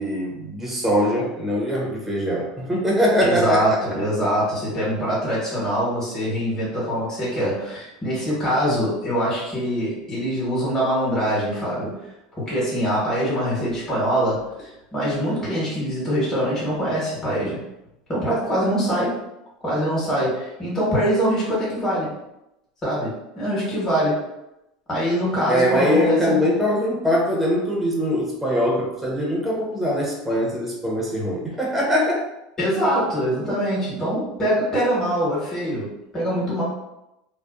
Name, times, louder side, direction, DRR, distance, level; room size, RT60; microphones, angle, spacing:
voice 1, 0.0-3.8 25.5-32.2, equal, 5° right, -3 dB, 0.7 m, -22 dB
voice 2, 3.2-12.0 12.4-17.6 18.1-19.1 19.6-22.1 22.8-24.2 24.9-26.5 32.6-36.6, equal, 20° left, -8 dB, 1.2 m, -23 dB
2.5 x 2.1 x 2.4 m, 0.89 s
supercardioid pair, 115°, 3 cm